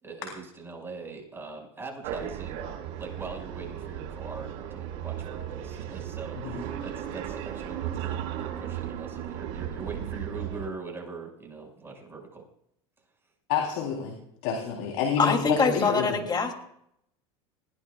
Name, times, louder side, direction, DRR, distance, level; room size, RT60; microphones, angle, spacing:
voice 1, 0.0-2.7 3.0-12.4, right 4 dB, 15° right, 0 dB, 6.1 m, -41 dB
sound 1, 2.0-10.7, right 10 dB, 70° right, 5.0 m, -36 dB
voice 2, 13.5-14.1 14.4-16.2, left 7 dB, 70° left, 0 dB, 3.9 m, -28 dB
voice 3, 15.2-16.5, left 4 dB, 30° left, 4 dB, 3.0 m, -24 dB
20.5 x 16.5 x 2.5 m, 0.74 s
hypercardioid pair, 95°, 15 cm